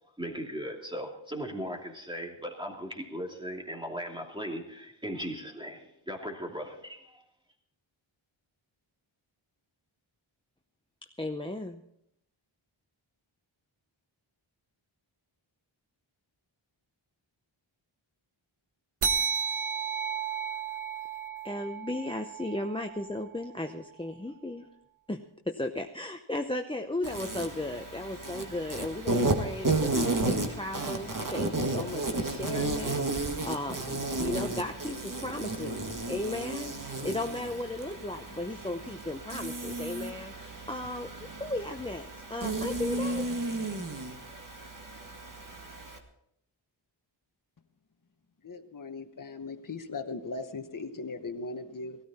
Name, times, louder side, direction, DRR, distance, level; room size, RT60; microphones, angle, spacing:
voice 1, 0.2-7.2, equal, 10° right, 1 dB, 2.7 m, -38 dB
voice 2, 11.2-11.8 21.4-24.6 25.1-25.2 25.5-43.2, left 1 dB, 10° left, 4 dB, 0.7 m, -35 dB
sound 1, 19.0-23.9, right 6 dB, 85° right, 1.3 m, -34 dB
Insect, 27.0-46.0, right 2 dB, 40° right, 1.8 m, -33 dB
voice 3, 48.4-52.0, left 3 dB, 40° left, 6 dB, 1.1 m, -38 dB
17.5 x 13.5 x 4.3 m, 0.75 s
wide cardioid pair, 75°, 49 cm